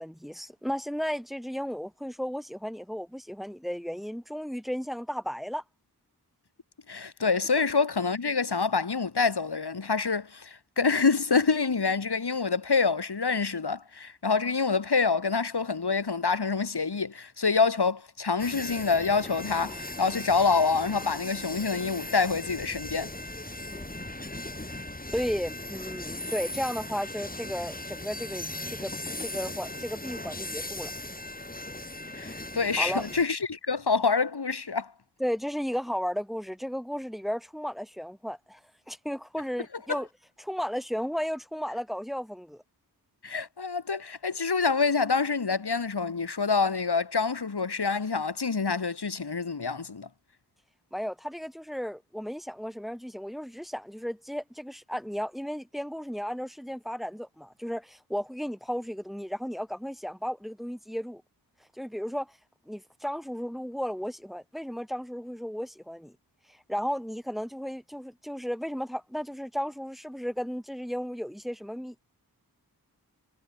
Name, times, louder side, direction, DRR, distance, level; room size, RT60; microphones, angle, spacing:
voice 1, 0.0-5.6 23.7-23.9 25.1-28.9 29.2-30.9 32.8-33.1 35.2-38.6 38.9-40.1 40.4-42.6 50.9-61.2 61.8-62.3 62.7-66.1 66.7-72.0, equal, ahead, 3.8 m, -34 dB
voice 2, 6.9-23.1 32.1-34.9 43.2-50.1, left 4 dB, 90° left, 5.3 m, -26 dB
sound 1, 18.4-33.3, left 1 dB, 20° left, 4.7 m, -38 dB
wide cardioid pair, 70°, 38 cm